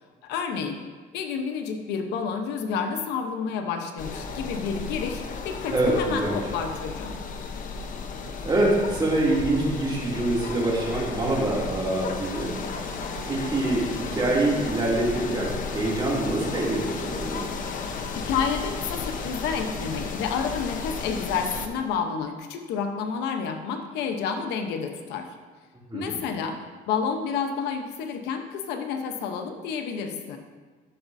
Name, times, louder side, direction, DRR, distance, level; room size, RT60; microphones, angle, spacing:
voice 1, 0.2-0.8 1.1-7.2 18.1-25.3 25.9-26.6 26.9-30.4, left 6 dB, 90° left, 5 dB, 0.9 m, -30 dB
sound 1, 4.0-21.7, left 4 dB, 50° left, 0.9 m, -34 dB
voice 2, 5.7-6.4 8.4-12.6 13.3-17.5 25.9-26.2, right 2 dB, 25° right, -5 dB, 2.6 m, -25 dB
12.0 x 7.2 x 2.7 m, 1.4 s
cardioid pair, 110°, 17 cm